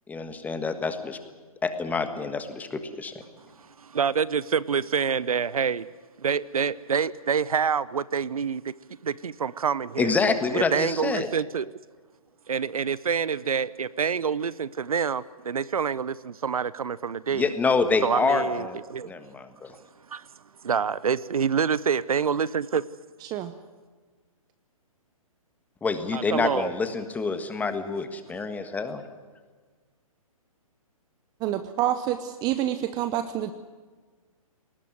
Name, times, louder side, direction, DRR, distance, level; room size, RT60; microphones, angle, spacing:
voice 1, 0.1-1.2 1.6-3.2 10.0-11.3 17.3-18.8 19.0-19.8 25.8-29.0, left 4 dB, 10° left, 9 dB, 1.5 m, -27 dB
voice 2, 3.6-5.9 6.2-8.7 9.0-10.1 10.5-11.7 12.5-17.5 18.0-19.1 20.1-20.3 20.6-22.8 26.1-26.7, right 6 dB, 75° right, 20 dB, 0.7 m, -27 dB
voice 3, 31.4-33.5, right 12 dB, 20° right, 11 dB, 0.8 m, -27 dB
20.5 x 19.0 x 9.6 m, 1.4 s
figure-of-eight pair, 130°, 19 cm